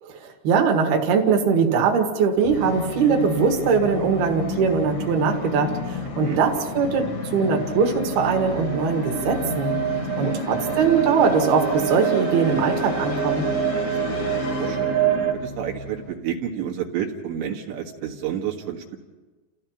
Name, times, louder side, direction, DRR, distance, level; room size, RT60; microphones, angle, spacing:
voice 1, 0.0-9.7 10.2-13.5, right 5 dB, 65° right, 2 dB, 3.6 m, -21 dB
Musical instrument, 2.4-16.1, left 4 dB, 55° left, 1.8 m, -32 dB
sound 1, 6.6-15.3, right 7 dB, 45° right, 1.9 m, -27 dB
voice 2, 10.0-10.4 13.7-15.0 15.3-19.0, right 9 dB, 85° right, 0 dB, 3.9 m, -31 dB
29.5 x 15.0 x 5.8 m, 1.2 s
omnidirectional pair, 5.0 m